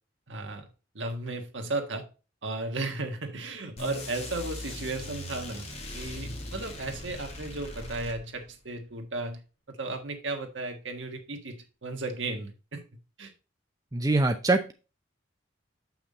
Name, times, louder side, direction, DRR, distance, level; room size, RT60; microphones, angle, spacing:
voice 1, 0.3-0.7 0.9-2.1 2.4-5.7 5.9-9.4 9.7-12.8 13.2-13.3, right 2 dB, 65° right, 4 dB, 1.6 m, -35 dB
sound 1, 3.8-8.6, left 1 dB, 35° left, 1.7 m, -39 dB
voice 2, 13.9-14.7, right 2 dB, 20° right, 5 dB, 0.6 m, -24 dB
7.0 x 5.9 x 4.0 m, 0.32 s
head